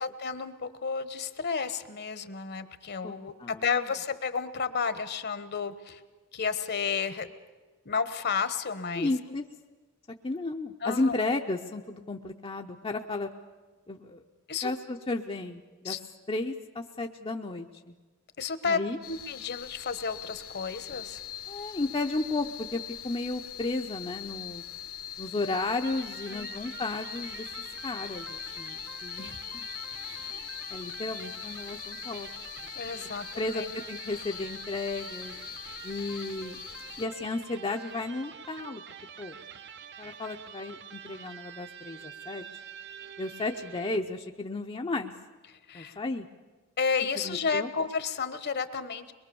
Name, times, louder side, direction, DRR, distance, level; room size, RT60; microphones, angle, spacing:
voice 1, 0.0-6.0 6.3-7.3 7.8-9.1 10.8-11.2 14.5-14.7 15.8-16.0 18.4-18.8 19.1-21.2 26.3-26.5 32.7-33.7 45.5-46.0 46.8-49.1, left 5 dB, 50° left, 12 dB, 1.1 m, -32 dB
voice 2, 3.0-3.9 9.0-9.4 10.2-13.3 13.9-14.2 14.6-16.0 16.3-18.0 18.6-19.0 21.5-24.6 25.2-27.5 27.8-29.7 30.3-32.3 32.6-32.7 33.4-35.4 35.8-36.6 37.0-38.8 39.2-39.4 40.0-42.4 43.2-45.1 45.7-46.3 47.2-47.7, left 2 dB, 25° left, 2 dB, 0.7 m, -33 dB
sound 1, 19.0-37.1, left 11 dB, 75° left, 1.3 m, -42 dB
Electric guitar, 25.8-44.2, right 7 dB, 55° right, 0.8 m, -46 dB
23.0 x 22.0 x 7.0 m, 1.3 s
head